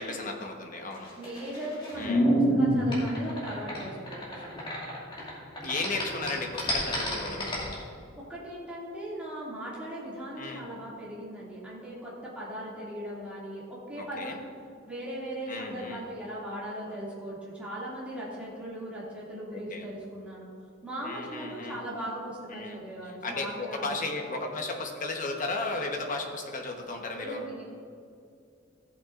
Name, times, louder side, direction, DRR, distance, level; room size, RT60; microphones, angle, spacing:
voice 1, 0.0-1.1 2.0-2.3 5.6-7.7 10.4-10.6 14.0-14.4 15.5-16.0 19.5-19.8 21.0-21.8 22.5-22.8 23.0-27.4, left 2 dB, 40° left, 2 dB, 1.1 m, -35 dB
sound 1, 0.9-5.3 5.6-7.7, equal, 25° left, 2.3 m, -27 dB
voice 2, 1.1-4.5 8.1-14.5 14.8-20.5 20.8-24.0 27.1-27.6, right 1 dB, 5° right, -8 dB, 2.3 m, -39 dB
15.0 x 8.6 x 2.5 m, 2.3 s
head